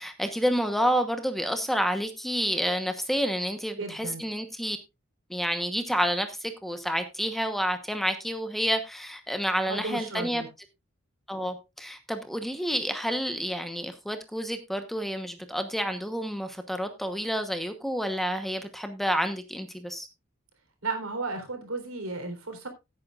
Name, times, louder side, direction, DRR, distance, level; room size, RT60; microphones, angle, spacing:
voice 1, 0.0-4.8 5.3-10.4 11.3-20.1, equal, ahead, 7 dB, 1.1 m, -29 dB
voice 2, 3.8-4.2 9.7-10.5 20.8-22.7, right 3 dB, 80° right, 5 dB, 3.9 m, -34 dB
16.5 x 9.0 x 2.5 m, 0.24 s
head